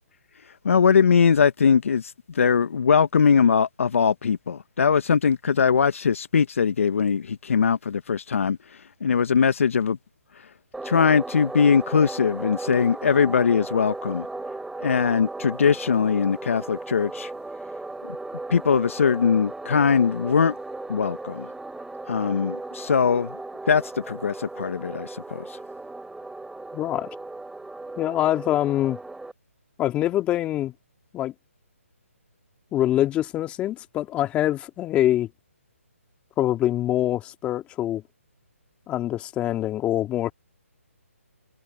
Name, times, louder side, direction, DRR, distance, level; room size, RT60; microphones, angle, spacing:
voice 1, 0.6-8.6 9.0-10.0 10.8-14.3 14.8-17.3 18.1-18.2 18.5-20.5 20.9-21.5 22.1-23.4 23.7-25.6, left 6 dB, 65° left, 1.1 m, -21 dB
sound 1, 10.7-29.3, right 2 dB, 5° right, 3.5 m, -36 dB
voice 2, 26.7-27.1 28.0-29.0 29.8-30.7 31.1-31.3 32.7-35.3 36.4-38.0 38.9-40.3, left 13 dB, 15° left, 2.7 m, -24 dB
hypercardioid pair, 150°, 8 cm